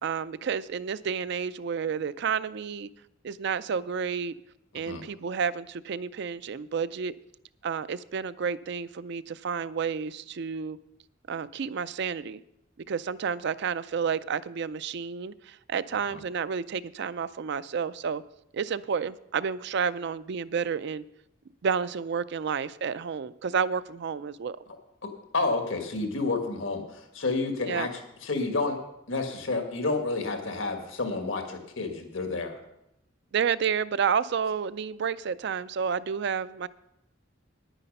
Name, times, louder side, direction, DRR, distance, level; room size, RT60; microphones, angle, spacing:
voice 1, 0.0-2.9 3.2-4.3 4.7-7.1 7.6-10.8 11.3-12.4 12.9-18.2 18.5-21.0 21.6-24.6 27.6-27.9 33.3-36.7, right 6 dB, 60° right, 0.4 m, -30 dB
voice 2, 25.0-27.9 28.2-28.8 29.1-32.6, left 3 dB, 85° left, 1.6 m, -30 dB
10.0 x 9.9 x 5.3 m
head